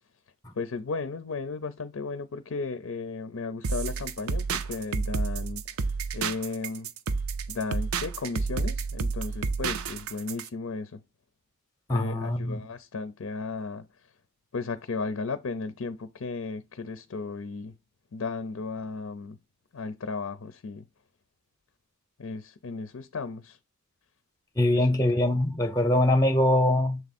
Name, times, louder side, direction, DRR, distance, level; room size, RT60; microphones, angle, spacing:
voice 1, 0.5-5.6 6.1-6.9 7.5-11.0 11.9-13.8 14.5-17.8 18.1-19.4 19.7-20.9 22.2-23.6, left 4 dB, 65° left, 0.5 m, -35 dB
sound 1, 3.6-10.5, right 4 dB, 80° right, 0.6 m, -30 dB
voice 2, 11.9-12.6 24.6-27.0, left 1 dB, 15° left, 0.7 m, -23 dB
6.9 x 3.5 x 4.1 m
head